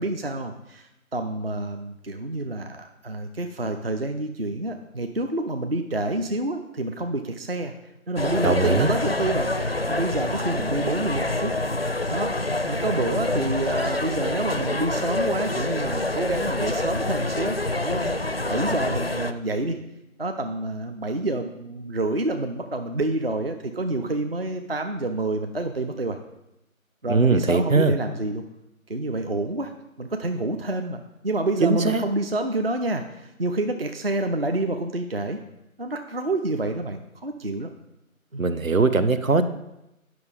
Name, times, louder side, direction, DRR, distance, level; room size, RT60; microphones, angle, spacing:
voice 1, 0.0-11.5 12.1-12.3 12.6-19.8 20.2-26.2 27.0-28.4 28.9-29.7 30.0-35.4 35.8-37.7 38.3-38.4, right 2 dB, 45° right, 6 dB, 0.6 m, -28 dB
sound 1, 8.2-19.3, left 2 dB, 45° left, 0.4 m, -26 dB
voice 2, 8.4-8.9 27.1-27.9 31.6-32.0 38.4-39.5, right 3 dB, 70° right, 10 dB, 0.9 m, -20 dB
9.4 x 5.9 x 5.1 m, 0.90 s
figure-of-eight pair, 160°, 42 cm